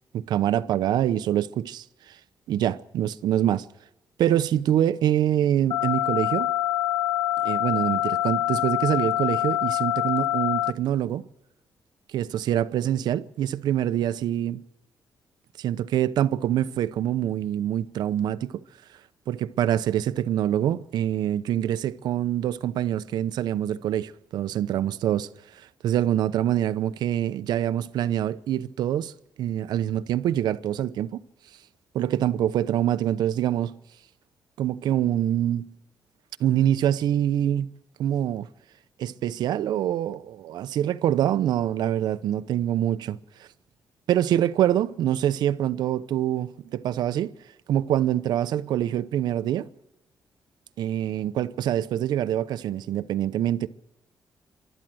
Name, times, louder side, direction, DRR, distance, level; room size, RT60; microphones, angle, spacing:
voice 1, 0.1-2.2 2.5-3.7 4.2-6.5 7.4-11.2 12.1-14.6 15.6-18.6 19.3-25.3 25.8-29.1 29.4-31.2 31.9-33.8 34.6-35.7 36.4-37.7 38.0-38.5 39.0-43.5 44.1-47.3 47.7-49.7 50.8-53.7, right 11 dB, 90° right, 0.8 m, -25 dB
sound 1, 5.7-10.7, left 14 dB, 75° left, 0.7 m, -25 dB
27.5 x 12.5 x 7.8 m
cardioid pair, 120°, 7 cm